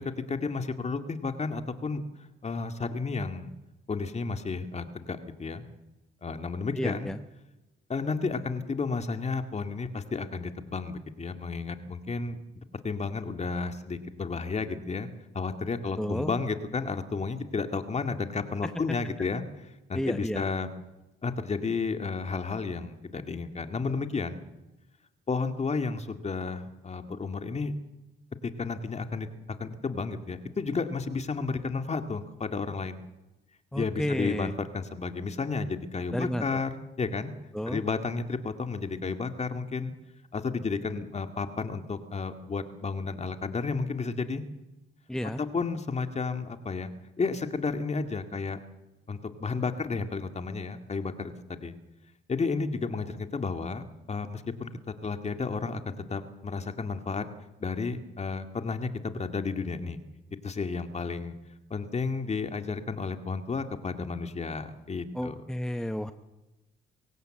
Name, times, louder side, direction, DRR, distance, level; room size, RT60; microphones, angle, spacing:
voice 1, 0.0-2.0 2.4-3.5 3.9-5.7 6.2-7.1 7.9-15.1 15.3-19.4 19.9-20.7 21.2-24.4 25.3-27.7 28.4-29.3 29.6-33.0 33.7-37.3 37.7-39.9 40.3-44.4 45.4-46.9 47.2-48.6 49.1-51.7 52.3-54.7 55.0-57.3 57.6-60.0 60.4-61.3 61.7-65.4, left 4 dB, 35° left, 8 dB, 2.1 m, -32 dB
voice 2, 6.8-7.2 16.0-16.3 18.6-19.0 19.9-20.4 33.7-34.5 36.1-36.4 37.5-37.8 45.1-45.4 65.1-66.1, equal, 5° left, 9 dB, 0.9 m, -31 dB
23.5 x 16.5 x 7.8 m, 1.0 s
cardioid pair, 90°, 20 cm